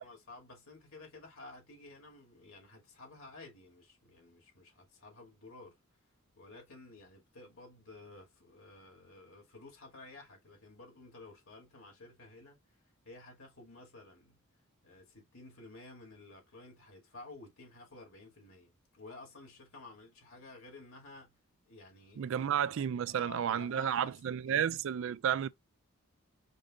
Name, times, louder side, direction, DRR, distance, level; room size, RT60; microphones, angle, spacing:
voice 1, 0.0-5.8 6.4-12.8 13.0-14.4 14.8-21.3 21.7-22.5 23.1-24.2 24.5-24.7, left 2 dB, 65° left, 2.4 m, -53 dB
voice 2, 22.2-25.5, right 9 dB, 60° right, 0.3 m, -32 dB
5.3 x 2.6 x 3.6 m
head